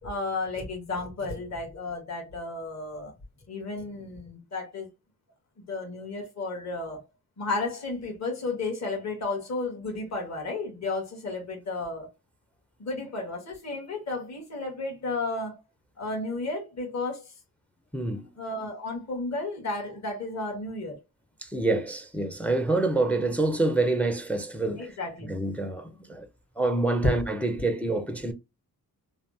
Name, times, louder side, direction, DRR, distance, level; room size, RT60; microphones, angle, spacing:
voice 1, 0.0-3.1 3.5-4.9 5.7-7.0 7.4-12.1 12.8-15.6 16.0-17.3 18.4-21.0 24.8-25.3 27.0-27.2, left 2 dB, 45° left, 1.4 m, -33 dB
voice 2, 17.9-18.3 21.5-24.9 25.2-26.2 26.6-28.3, right 2 dB, 5° left, 0.4 m, -27 dB
3.2 x 2.0 x 2.6 m
cardioid pair, 95°, 36 cm